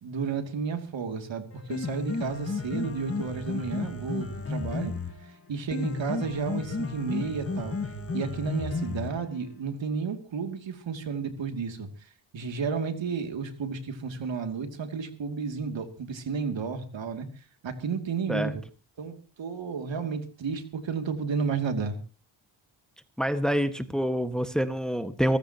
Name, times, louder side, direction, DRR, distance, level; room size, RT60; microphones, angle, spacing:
voice 1, 0.0-4.9 5.2-7.8 8.1-18.6 19.0-22.0, right 5 dB, 70° right, 6 dB, 2.7 m, -32 dB
Piano, 1.5-9.5, left 3 dB, 30° left, 1.9 m, -33 dB
voice 2, 23.2-25.4, equal, ahead, 9 dB, 1.6 m, -26 dB
24.5 x 15.0 x 3.0 m, 0.35 s
cardioid pair, 70°, 47 cm